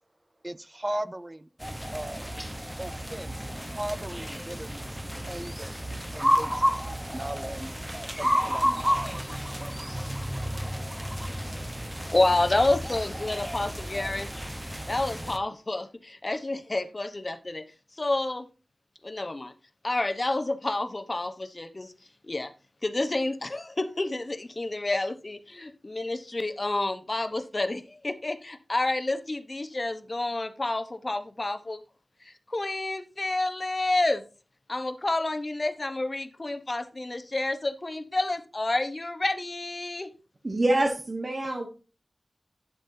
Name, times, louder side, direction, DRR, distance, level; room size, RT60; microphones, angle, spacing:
voice 1, 0.4-1.5 1.9-2.3 2.8-5.7 6.1-6.7 7.1-7.7 8.2-9.0, right 1 dB, 25° right, 0.5 m, -37 dB
sound 1, 1.6-15.4, equal, 10° right, 1.0 m, -31 dB
voice 2, 12.1-14.3 14.9-17.6 18.0-18.5 19.0-19.5 19.8-21.9 22.2-22.5 22.8-31.8 32.2-34.2 34.7-40.1, left 2 dB, 40° left, 1.0 m, -29 dB
voice 3, 40.4-41.7, right 1 dB, 45° right, 1.4 m, -26 dB
10.5 x 7.4 x 2.8 m
wide cardioid pair, 55°, 0 cm